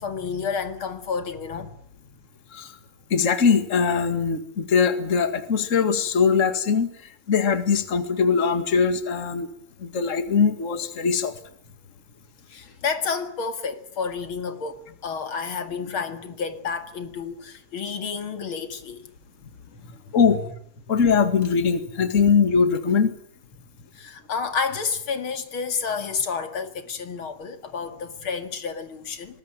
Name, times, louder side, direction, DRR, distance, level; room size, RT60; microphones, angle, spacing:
voice 1, 0.0-1.7 12.5-19.0 19.7-20.0 20.3-20.4 23.9-29.4, left 5 dB, 75° left, 2.9 m, -30 dB
voice 2, 3.1-6.9 7.3-9.5 9.8-11.3 20.1-20.4 20.9-23.1, left 6 dB, 35° left, 2.2 m, -21 dB
24.0 x 20.0 x 8.9 m
omnidirectional pair, 2.3 m